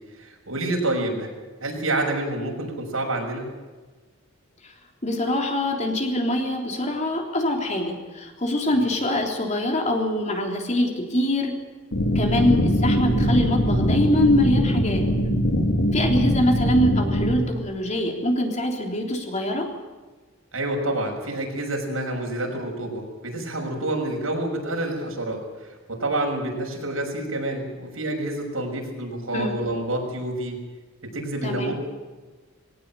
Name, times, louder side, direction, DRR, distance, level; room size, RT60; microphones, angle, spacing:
voice 1, 0.2-1.3 1.6-3.4 8.7-8.8 20.5-25.4 25.9-30.6 31.1-31.7, right 1 dB, 80° right, 1 dB, 6.5 m, -28 dB
voice 2, 5.0-11.6 12.2-15.1 15.9-19.7 29.3-29.5 31.4-31.7, left 1 dB, 35° left, 2 dB, 3.5 m, -24 dB
sound 1, 11.9-17.4, equal, 70° left, 2.9 m, -22 dB
21.0 x 18.0 x 9.0 m, 1.3 s
head